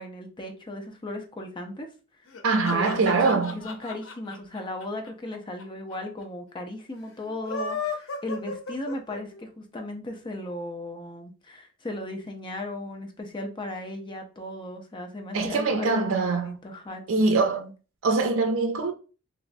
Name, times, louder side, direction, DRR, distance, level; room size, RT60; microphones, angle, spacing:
voice 1, 0.0-1.9 2.7-17.0 17.4-17.7, left 1 dB, 25° left, 0.5 m, -36 dB
sound 1, 2.3-5.6 5.9-6.0 6.2-6.3 7.3-9.4, left 4 dB, 85° left, 0.7 m, -34 dB
voice 2, 2.4-3.5 15.3-16.5 17.1-17.7 18.0-18.9, right 3 dB, 85° right, 0.4 m, -23 dB
3.1 x 2.4 x 2.5 m
head